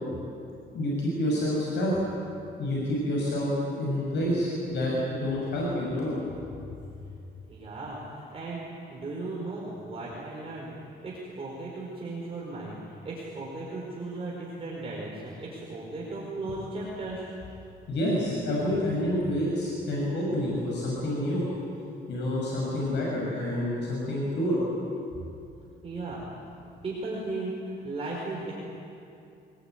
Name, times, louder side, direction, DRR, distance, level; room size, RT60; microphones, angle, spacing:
voice 1, 0.7-1.9 2.6-6.1 17.9-21.4 22.1-24.6, left 1 dB, 70° left, -4 dB, 6.8 m, -28 dB
voice 2, 7.5-10.7 11.0-17.3 25.8-26.4 26.8-28.5, right 2 dB, 30° right, -4 dB, 5.0 m, -36 dB
25.5 x 20.5 x 9.3 m, 2.6 s
cardioid pair, 150°, 19 cm